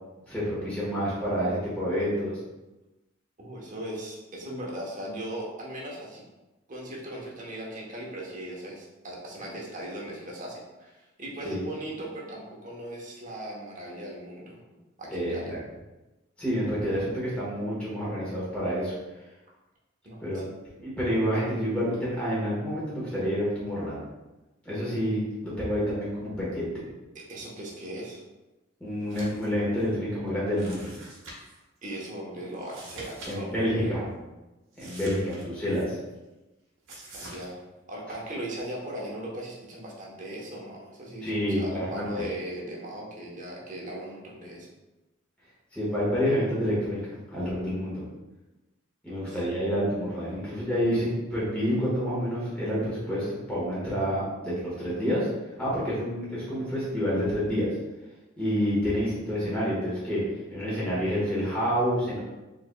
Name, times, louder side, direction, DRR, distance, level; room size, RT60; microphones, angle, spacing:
voice 1, 0.3-2.4 11.4-11.6 15.1-15.6 16.4-18.9 20.2-20.4 20.8-24.0 24.6-26.7 28.8-30.9 33.3-34.0 34.8-36.0 41.2-42.3 45.7-47.0 47.3-48.0 49.0-55.3 55.6-57.7 58.4-60.2 60.5-62.2, equal, 5° left, -9 dB, 1.3 m, -28 dB
voice 2, 3.4-6.2 6.7-14.6 15.0-15.5 20.0-20.4 27.1-28.2 31.8-34.0 37.1-37.6 37.9-44.7 49.1-49.4, right 1 dB, 40° right, -3 dB, 1.0 m, -38 dB
sound 1, 29.0-29.5 29.8-29.9 30.6-31.6 32.6-33.3 33.6-33.7 34.7-35.8 36.9-37.5, right 1 dB, 85° right, 1.2 m, -44 dB
4.7 x 3.7 x 2.2 m, 1.1 s
head